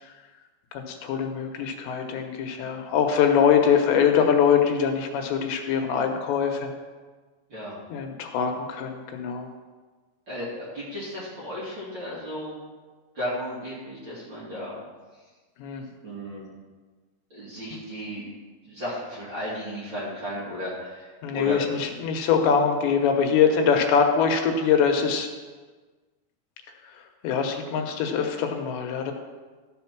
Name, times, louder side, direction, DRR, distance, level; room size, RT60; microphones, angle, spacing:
voice 1, 0.7-6.7 7.9-9.5 15.6-15.8 21.2-25.3 27.2-29.1, left 7 dB, 80° left, 4 dB, 3.2 m, -23 dB
voice 2, 10.3-12.5 13.1-14.8 16.0-16.4 17.3-18.2 18.6-21.6, equal, 35° right, -8 dB, 2.3 m, -34 dB
13.5 x 5.1 x 5.9 m, 1.4 s
omnidirectional pair, 5.0 m